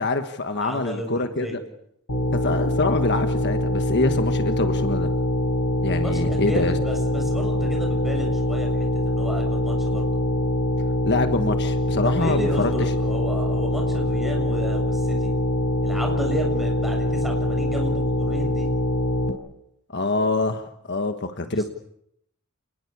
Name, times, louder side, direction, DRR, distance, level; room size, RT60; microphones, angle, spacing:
voice 1, 0.0-1.6 2.3-5.1 5.8-6.7 11.0-12.7 19.9-21.6, left 2 dB, 50° left, 8 dB, 1.4 m, -25 dB
voice 2, 0.5-1.6 5.9-10.0 12.0-15.3 15.8-18.7 21.4-21.7, equal, ahead, 1 dB, 7.3 m, -32 dB
sound 1, 2.1-19.3, left 1 dB, 85° left, 4.5 m, -24 dB
28.0 x 21.0 x 8.5 m, 0.75 s
head